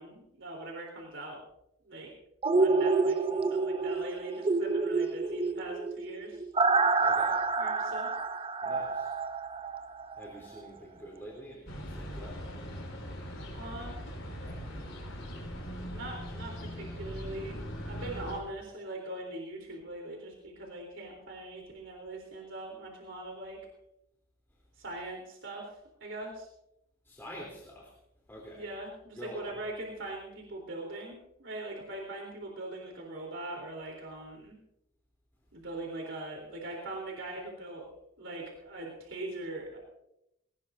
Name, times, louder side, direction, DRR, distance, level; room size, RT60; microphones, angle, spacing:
voice 1, 0.0-1.4 1.8-2.1 2.6-6.4 7.6-8.1 13.6-14.0 15.9-23.6 24.8-25.7 26.0-26.5 28.5-34.6 35.5-37.9 38.2-39.8, right 2 dB, 60° right, 0 dB, 3.7 m, -41 dB
sound 1, 2.4-10.3 10.7-10.8, right 3 dB, 25° right, 0.5 m, -28 dB
voice 2, 7.0-7.4 8.6-9.1 10.2-12.4 27.1-27.9 28.3-28.6 29.2-29.5, equal, 10° left, -3 dB, 3.4 m, -46 dB
sound 2, 11.7-18.4, equal, 65° left, 4.5 m, -40 dB
21.0 x 19.0 x 2.7 m, 0.83 s
head